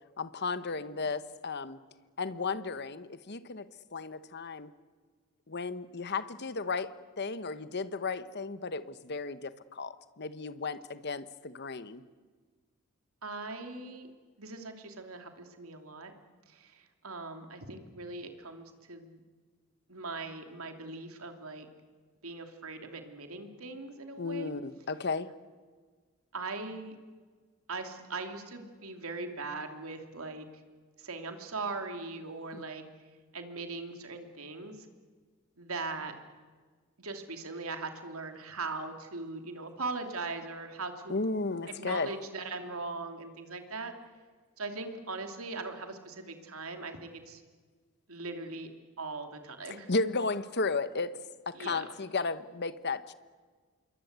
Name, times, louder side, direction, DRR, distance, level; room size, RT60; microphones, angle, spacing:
voice 1, 0.2-1.8 2.2-4.7 5.5-12.0 24.2-25.3 41.1-42.1 49.9-51.2 51.5-53.1, left 4 dB, 50° left, 14 dB, 1.1 m, -34 dB
voice 2, 13.2-14.1 14.4-16.1 16.5-19.2 19.9-21.7 22.2-24.5 26.3-26.9 27.7-30.5 31.0-32.8 33.3-34.9 35.6-36.1 37.0-41.2 41.7-43.9 44.6-47.4 48.1-48.7 49.0-49.9 51.5-51.8, right 3 dB, 75° right, 6 dB, 3.0 m, -40 dB
27.0 x 22.5 x 8.2 m, 1.5 s
head